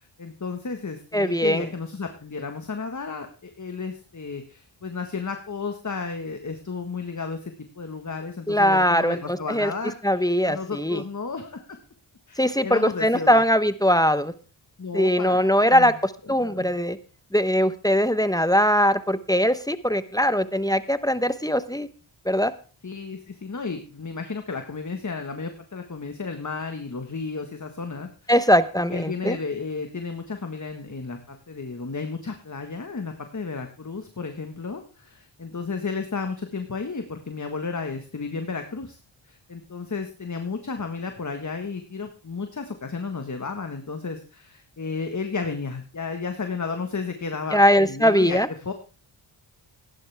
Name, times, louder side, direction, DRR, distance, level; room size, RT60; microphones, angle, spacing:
voice 1, 0.0-11.7 12.3-13.4 14.8-15.9 16.3-16.7 22.8-28.3 28.9-39.0 39.3-48.7, left 4 dB, 35° left, 6 dB, 1.6 m, -33 dB
voice 2, 1.1-1.7 8.5-9.7 10.0-11.0 12.4-14.3 14.9-15.9 16.3-17.0 17.3-21.9 22.2-22.5 28.3-29.4 47.5-48.5, equal, 5° left, 12 dB, 1.0 m, -21 dB
16.0 x 11.0 x 3.5 m, 0.37 s
cardioid pair, 45°, 49 cm